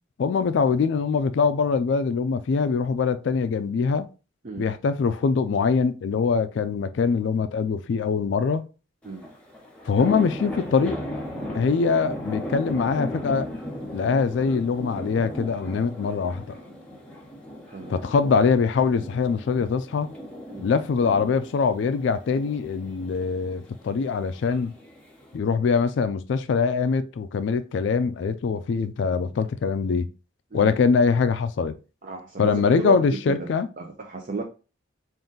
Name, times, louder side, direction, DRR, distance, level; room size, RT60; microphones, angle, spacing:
voice 1, 0.2-4.1 4.6-8.6 9.9-11.0 11.5-13.5 13.9-16.6 17.9-20.1 20.6-24.7 25.3-30.1 30.5-31.7 32.4-33.7, left 5 dB, 65° left, 0.3 m, -23 dB
sound 1, 9.0-25.4, left 1 dB, 5° left, 0.8 m, -37 dB
voice 2, 17.7-18.1 20.5-20.7 30.5-30.8 32.0-33.5 33.8-34.4, right 3 dB, 40° right, 0.5 m, -34 dB
3.7 x 2.5 x 3.8 m
head